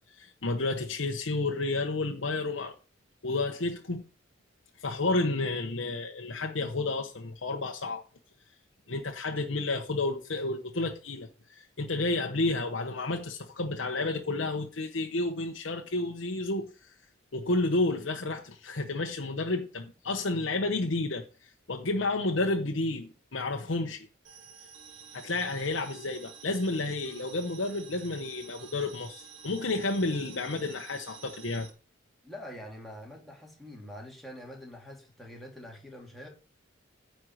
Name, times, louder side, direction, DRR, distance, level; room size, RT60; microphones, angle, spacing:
voice 1, 0.1-2.7 3.2-4.0 4.8-8.0 8.9-16.9 17.3-24.1 25.1-31.7, left 2 dB, 75° left, 1.0 m, -31 dB
sound 1, 24.2-31.7, right 6 dB, 75° right, 2.0 m, -49 dB
voice 2, 32.2-36.3, equal, ahead, 2.9 m, -45 dB
9.8 x 4.6 x 7.8 m
head